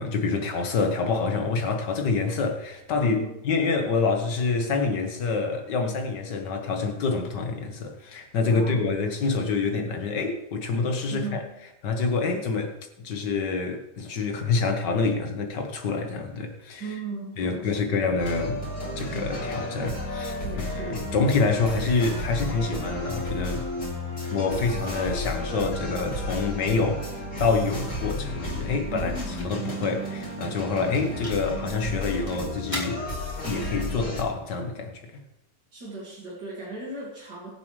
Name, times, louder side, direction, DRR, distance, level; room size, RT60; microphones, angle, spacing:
voice 1, 0.0-11.4 11.8-12.8 13.0-17.0 17.4-23.7 24.3-27.1 27.4-33.1 33.5-35.2, left 4 dB, 90° left, 2.0 m, -27 dB
voice 2, 3.0-3.3 8.5-8.8 11.1-11.5 16.8-18.1 20.4-21.0 24.7-24.9 28.9-29.4 35.7-37.5, right 3 dB, 80° right, 2.8 m, -37 dB
sound 1, 18.2-34.2, left 1 dB, 45° left, 3.5 m, -33 dB
sound 2, 27.9-35.8, left 1 dB, 20° left, 2.7 m, -44 dB
22.0 x 7.4 x 3.2 m
omnidirectional pair, 1.8 m